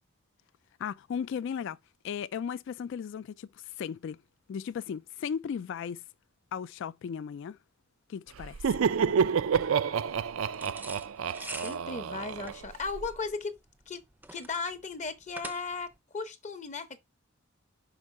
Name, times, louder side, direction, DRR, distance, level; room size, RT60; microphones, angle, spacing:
voice 1, 0.8-1.8 2.0-4.2 4.5-6.0 6.5-7.6 8.1-8.6, left 7 dB, 60° left, 0.3 m, -36 dB
Laughter, 8.4-13.1, right 6 dB, 75° right, 0.4 m, -29 dB
sound 1, 10.5-16.0, right 2 dB, 10° right, 0.5 m, -45 dB
voice 2, 11.5-13.6 13.9-14.0 14.3-15.9 16.1-17.0, left 4 dB, 35° left, 0.7 m, -36 dB
5.5 x 4.8 x 5.2 m
head